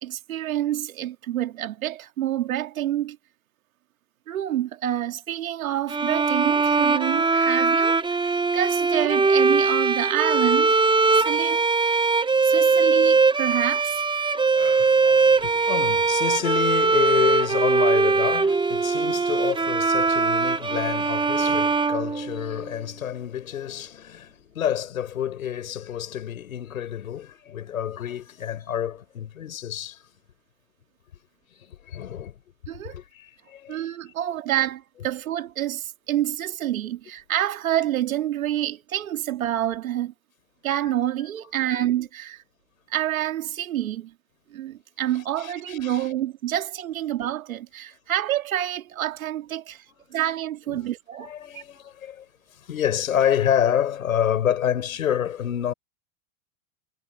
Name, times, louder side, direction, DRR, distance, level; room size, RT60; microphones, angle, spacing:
voice 1, 0.0-3.2 4.3-10.8 11.2-12.1 12.4-14.0 32.7-33.0 33.7-40.1 40.6-42.4 42.9-44.1 44.5-49.8 50.1-51.6, right 12 dB, 85° right, 2.5 m, -28 dB
sound 1, 5.9-22.7, right 4 dB, 10° right, 1.4 m, -21 dB
voice 2, 14.6-30.0 31.6-32.4 32.9-33.8 45.4-46.0 50.7-50.9 51.2-52.3 52.5-55.7, left 10 dB, 90° left, 7.8 m, -28 dB
hypercardioid pair, 105°, 40 cm